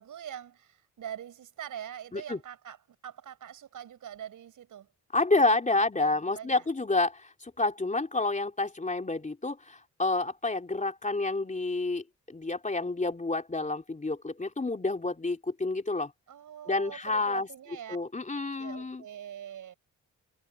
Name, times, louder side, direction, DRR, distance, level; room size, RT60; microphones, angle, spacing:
voice 1, 0.0-4.9 5.3-6.7 16.3-18.0 18.6-19.7, right 9 dB, 75° right, 7.1 m, -43 dB
voice 2, 5.1-16.1 16.7-17.5 17.9-19.0, left 3 dB, 25° left, 3.4 m, -29 dB
cardioid pair, 70°, 31 cm